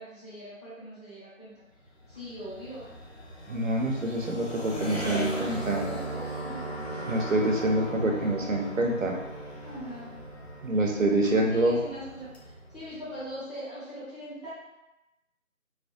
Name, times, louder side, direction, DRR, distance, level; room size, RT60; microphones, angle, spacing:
voice 1, 0.0-1.5 2.1-2.8 4.8-7.5 9.6-10.1 11.5-14.5, equal, 30° left, -13 dB, 1.1 m, -42 dB
sound 1, 1.7-13.3, right 1 dB, 50° left, 0.6 m, -38 dB
voice 2, 3.5-5.8 7.0-9.2 10.6-11.8, right 1 dB, 70° right, 1 dB, 0.5 m, -26 dB
2.4 x 2.0 x 2.6 m, 0.97 s
figure-of-eight pair, 170°, 41 cm